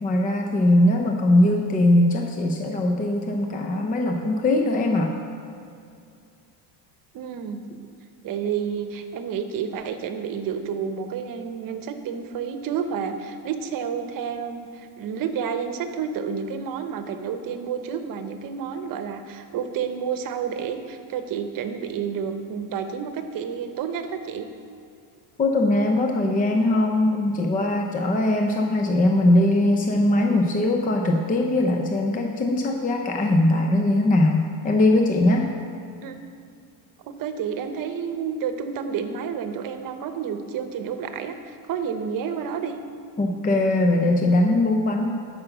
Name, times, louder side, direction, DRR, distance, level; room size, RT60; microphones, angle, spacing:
voice 1, 0.0-5.1 25.4-35.5 43.2-45.1, left 1 dB, 15° left, 3 dB, 0.7 m, -21 dB
voice 2, 7.1-7.6 8.2-24.5 36.0-36.2 37.0-42.8, right 7 dB, 45° right, 8 dB, 1.0 m, -30 dB
11.5 x 5.9 x 7.0 m, 2.4 s
cardioid pair, 135°, 47 cm